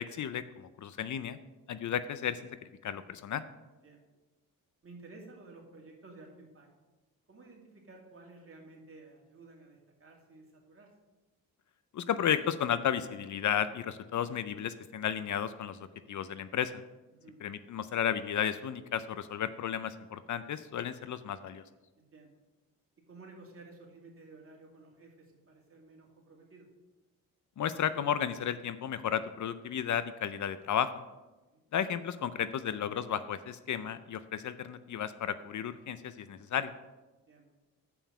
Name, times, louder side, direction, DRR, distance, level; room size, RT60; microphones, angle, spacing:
voice 1, 0.0-1.4 1.7-2.4 2.8-3.5 11.9-16.8 17.4-21.6 27.6-30.9 31.7-36.7, left 9 dB, 60° left, 13 dB, 0.5 m, -33 dB
voice 2, 3.7-4.1 4.8-6.7 7.3-10.9 17.1-17.4 22.0-22.4 23.1-26.7 31.5-31.6 37.3-37.5, right 3 dB, 40° right, 0 dB, 2.3 m, -53 dB
7.0 x 5.6 x 7.0 m, 1.1 s
cardioid pair, 80°, 34 cm